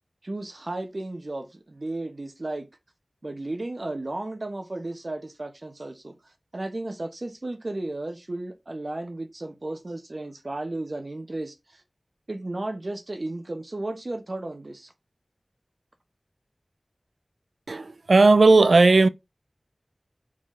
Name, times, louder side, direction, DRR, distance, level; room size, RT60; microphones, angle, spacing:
voice 1, 0.2-2.7 3.2-11.8 12.3-14.9, right 2 dB, 55° right, 0.9 m, -34 dB
voice 2, 17.7-19.1, right 3 dB, 85° right, 0.3 m, -16 dB
4.0 x 3.8 x 3.2 m
wide cardioid pair, 55°, 0 cm